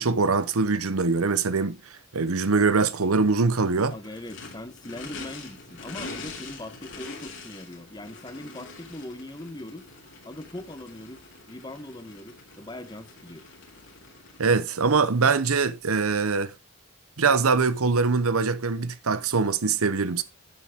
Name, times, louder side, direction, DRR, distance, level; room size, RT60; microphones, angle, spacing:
voice 1, 0.0-1.8 2.1-3.9 14.4-16.5 17.2-20.2, right 4 dB, 85° right, 0.9 m, -23 dB
Race car auto racing / Idling / Accelerating revving vroom, 2.5-14.5, left 3 dB, 60° left, 3.2 m, -44 dB
voice 2, 3.9-9.9 10.2-11.2 11.5-13.4, left 1 dB, 20° left, 1.1 m, -40 dB
10.0 x 7.4 x 3.6 m
head